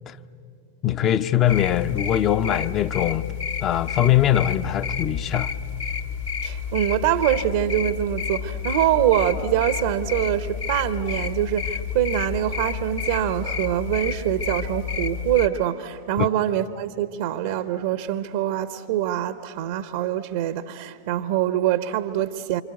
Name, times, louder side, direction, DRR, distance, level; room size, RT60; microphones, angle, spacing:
voice 1, 0.8-3.2 3.6-5.5 16.2-16.3, left 11 dB, 30° left, 0.7 m, -21 dB
sound 1, 1.4-15.5, left 8 dB, 55° left, 1.2 m, -30 dB
sound 2, 4.8-15.7, right 4 dB, 15° right, 0.6 m, -41 dB
voice 2, 6.4-22.6, right 11 dB, 55° right, 0.8 m, -24 dB
28.0 x 25.5 x 8.2 m
figure-of-eight pair, 90°, 0 cm